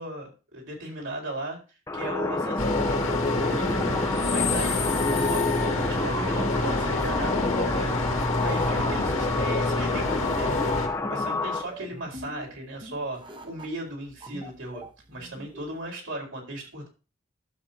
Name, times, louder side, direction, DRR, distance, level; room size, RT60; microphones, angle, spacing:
voice 1, 0.0-1.6 1.9-4.9 5.2-8.0 8.4-14.8 15.1-16.9, right 1 dB, 75° right, 0 dB, 4.7 m, -37 dB
sound 1, 1.9-11.6, left 2 dB, 15° left, 0.8 m, -28 dB
sound 2, 2.6-10.9, left 2 dB, 85° left, 2.2 m, -28 dB
sound 3, 3.3-15.9, equal, 25° right, 1.3 m, -45 dB
12.0 x 7.6 x 2.8 m, 0.32 s
head